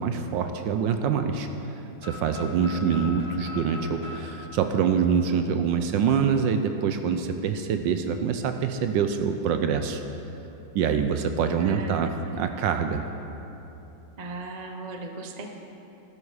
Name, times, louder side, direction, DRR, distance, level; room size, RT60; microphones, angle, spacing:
voice 1, 0.0-1.7 2.0-10.0 10.7-13.1, right 6 dB, 70° right, 7 dB, 1.2 m, -25 dB
sound 1, 2.0-5.8, left 3 dB, 35° left, 2.9 m, -41 dB
voice 2, 11.6-11.9 14.2-15.5, right 2 dB, 40° right, 3 dB, 0.6 m, -38 dB
12.0 x 12.0 x 4.9 m, 3.0 s
omnidirectional pair, 2.2 m